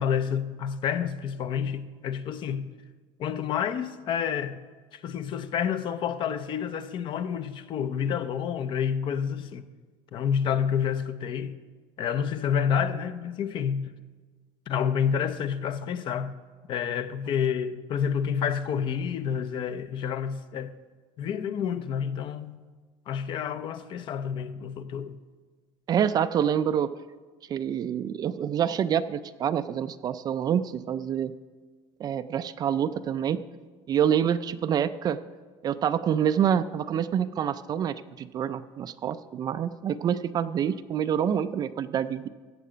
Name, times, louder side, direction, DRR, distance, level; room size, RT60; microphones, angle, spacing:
voice 1, 0.0-2.7 3.2-4.6 4.9-9.7 10.1-11.6 12.0-13.9 14.7-16.4 16.7-20.7 21.2-22.6 23.1-25.2, left 7 dB, 45° left, 0.6 m, -29 dB
voice 2, 25.9-26.9 27.5-31.3 32.0-33.4 33.9-35.2 35.6-42.3, right 9 dB, 35° right, 0.4 m, -27 dB
15.0 x 7.5 x 5.1 m
cardioid pair, 140°, 12 cm